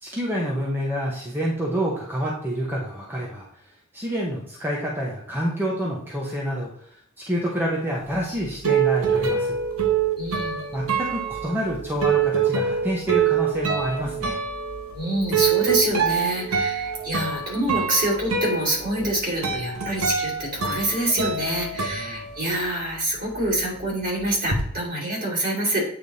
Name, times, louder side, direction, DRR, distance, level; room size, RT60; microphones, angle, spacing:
voice 1, 0.0-3.5 3.9-9.6 10.7-14.4 21.8-22.2, equal, 10° right, -4 dB, 1.0 m, -28 dB
sound 1, 8.1-22.9 23.2-24.6, right 6 dB, 75° right, 1.1 m, -25 dB
voice 2, 10.2-10.7 14.9-25.8, right 1 dB, 45° right, -4 dB, 2.9 m, -26 dB
8.7 x 3.4 x 4.0 m, 0.69 s
head